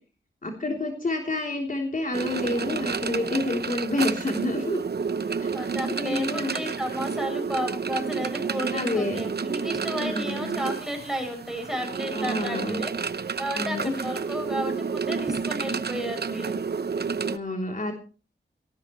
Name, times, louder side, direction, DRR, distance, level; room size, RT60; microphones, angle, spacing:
voice 1, 0.4-4.8 5.4-6.6 8.7-9.2 10.0-10.6 12.1-12.8 13.6-13.9 17.3-17.9, left 2 dB, 40° left, 1 dB, 3.5 m, -29 dB
sound 1, 2.1-17.4, right 5 dB, 55° right, 0.9 m, -30 dB
voice 2, 5.3-16.6, equal, 5° right, 4 dB, 7.4 m, -33 dB
19.0 x 17.5 x 3.2 m, 0.38 s
wide cardioid pair, 110°, 20 cm